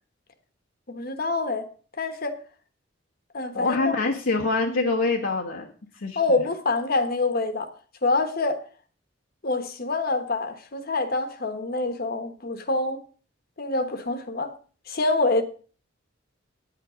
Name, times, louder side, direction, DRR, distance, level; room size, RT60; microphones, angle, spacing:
voice 1, 0.9-1.7 2.0-2.4 3.3-4.0 4.7-4.9 6.1-7.7 8.0-8.6 9.4-13.0 13.6-14.5 14.9-15.4, left 3 dB, 50° left, 1.3 m, -26 dB
voice 2, 3.5-5.7 5.9-6.4, left 3 dB, 75° left, 1.3 m, -25 dB
10.0 x 9.0 x 5.1 m
head